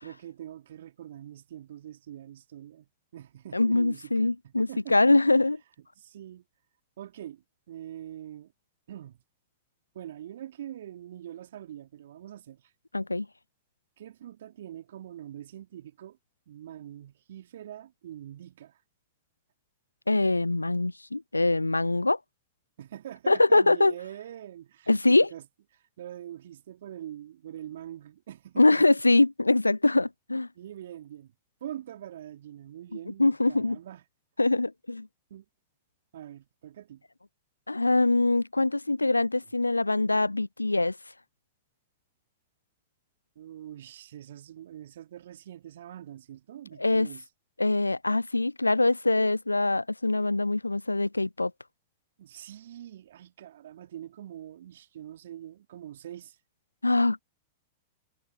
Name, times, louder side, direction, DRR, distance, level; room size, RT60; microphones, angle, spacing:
voice 1, 0.0-5.0 6.0-6.4 7.0-8.5 8.9-9.2 9.9-12.7 14.0-16.2 16.5-18.8 22.8-25.4 25.7-28.9 30.5-31.3 31.6-34.0 35.3-35.5 36.1-37.0 43.4-47.3 52.2-56.4, right 11 dB, 65° right, 3.6 m, -44 dB
voice 2, 3.5-5.6 12.9-13.3 20.1-22.2 23.3-23.9 24.9-25.3 28.6-30.5 33.2-33.8 34.4-35.1 37.7-41.0 46.8-47.1 47.6-51.5 56.8-57.2, left 2 dB, 90° left, 0.3 m, -23 dB
figure-of-eight pair, 95°, 0 cm